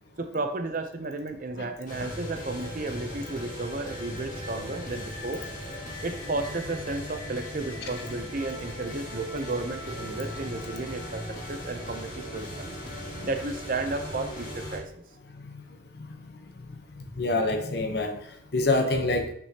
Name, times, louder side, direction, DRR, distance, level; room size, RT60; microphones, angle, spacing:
voice 1, 0.2-5.4 6.0-11.2 11.5-12.7 13.2-15.0, right 2 dB, 45° right, 7 dB, 0.6 m, -33 dB
sound 1, 1.9-14.8, equal, 40° left, 2.3 m, -38 dB
voice 2, 16.7-19.3, left 2 dB, 60° left, 5 dB, 0.9 m, -28 dB
6.1 x 6.0 x 2.9 m, 0.67 s
head